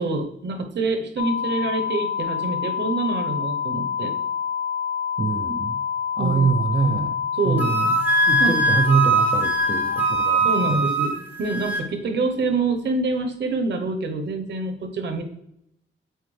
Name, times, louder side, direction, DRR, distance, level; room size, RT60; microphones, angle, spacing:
voice 1, 0.0-4.1 6.2-6.4 6.8-7.1 7.3-7.8 8.4-8.6 10.4-15.2, right 3 dB, 60° right, 6 dB, 0.8 m, -26 dB
sound 1, 1.2-10.7, left 7 dB, 85° left, 0.6 m, -27 dB
voice 2, 5.2-5.8 6.2-7.1 7.5-7.8 8.3-10.5, right 4 dB, 25° right, 5 dB, 0.3 m, -24 dB
Wind instrument woodwind instrument, 7.6-11.9, right 3 dB, 10° right, 0.7 m, -22 dB
8.0 x 4.1 x 3.2 m, 0.79 s
wide cardioid pair, 170°, 20 cm